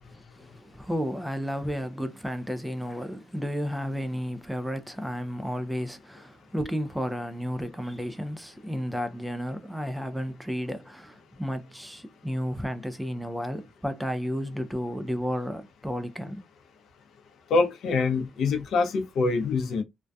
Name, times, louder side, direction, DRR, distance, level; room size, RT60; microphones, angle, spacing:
voice 1, 0.3-16.4, equal, 5° right, 0.4 m, -32 dB
voice 2, 17.5-19.8, left 4 dB, 70° left, 0.5 m, -25 dB
2.5 x 2.2 x 2.2 m
cardioid pair, 90°, 0 cm